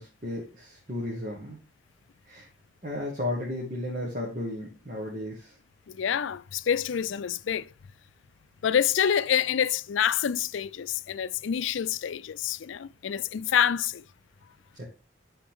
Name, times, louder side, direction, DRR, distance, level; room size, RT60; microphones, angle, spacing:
voice 1, 0.0-1.6 2.3-2.5 2.8-5.5 14.8-14.9, left 1 dB, 45° right, 1.7 m, -34 dB
voice 2, 5.9-7.7 8.6-14.0, left 8 dB, 90° left, 0.4 m, -27 dB
10.0 x 4.2 x 3.7 m
head